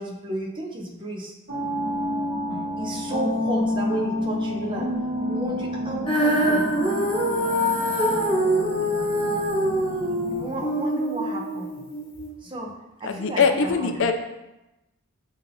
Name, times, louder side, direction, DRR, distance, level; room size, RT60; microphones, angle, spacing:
voice 1, 0.0-1.3 2.8-4.9 5.2-6.8 7.7-7.9 9.5-11.8 12.4-14.1, right 1 dB, 25° right, -1 dB, 0.6 m, -33 dB
sound 1, 1.5-10.5, left 1 dB, 45° right, 1.5 m, -29 dB
Female singing, 6.1-12.3, equal, 25° left, 0.9 m, -24 dB
voice 2, 13.0-14.1, left 5 dB, 65° left, 6 dB, 0.4 m, -22 dB
7.1 x 2.8 x 2.6 m, 0.96 s
head